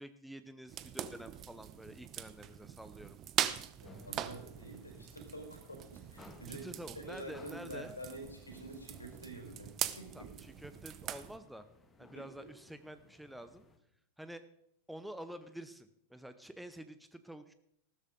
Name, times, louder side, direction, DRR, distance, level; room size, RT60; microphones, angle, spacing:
voice 1, 0.0-3.2 6.5-7.9 10.1-11.7 12.0-13.6 14.2-14.4 14.9-17.5, right 1 dB, ahead, 11 dB, 0.7 m, -48 dB
sound 1, 0.7-11.4, right 11 dB, 30° right, 0.8 m, -42 dB
voice 2, 3.8-6.7 6.9-10.3 12.1-12.5, right 1 dB, 80° left, 3 dB, 4.6 m, -47 dB
sound 2, 3.8-13.8, left 3 dB, 15° left, 1.6 m, -61 dB
15.0 x 13.0 x 3.8 m, 0.76 s
figure-of-eight pair, 90°, 0 cm